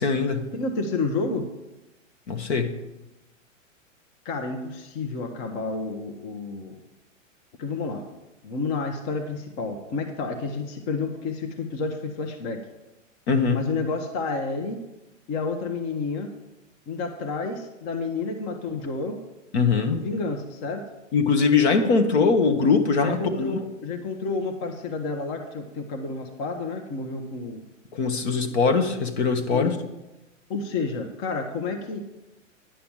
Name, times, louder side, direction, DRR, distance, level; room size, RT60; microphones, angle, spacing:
voice 1, 0.0-0.5 2.3-2.7 13.3-13.6 19.5-20.1 21.1-23.5 27.9-29.8, left 4 dB, 55° left, 6 dB, 1.5 m, -21 dB
voice 2, 0.5-1.5 4.2-6.8 7.6-8.0 8.4-12.7 13.5-14.8 15.3-16.3 16.9-19.2 19.9-20.8 23.0-27.7 29.5-29.8 30.5-32.0, left 3 dB, 35° left, 5 dB, 1.2 m, -30 dB
10.5 x 5.8 x 7.2 m, 1.0 s
hypercardioid pair, 130°, 39 cm